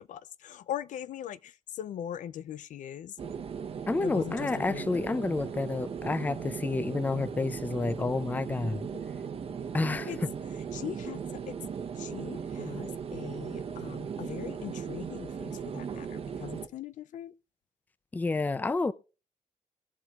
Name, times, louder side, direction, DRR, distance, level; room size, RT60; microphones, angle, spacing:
voice 1, 0.0-3.3 4.0-4.9 10.1-10.2 10.7-11.6 11.9-17.3, left 10 dB, 75° left, 0.5 m, -40 dB
sound 1, 3.2-16.7, right 7 dB, 45° right, 0.9 m, -38 dB
voice 2, 3.9-8.9 9.7-10.1 18.1-18.9, left 3 dB, 15° left, 0.4 m, -30 dB
22.0 x 7.3 x 2.4 m
wide cardioid pair, 165°, 13 cm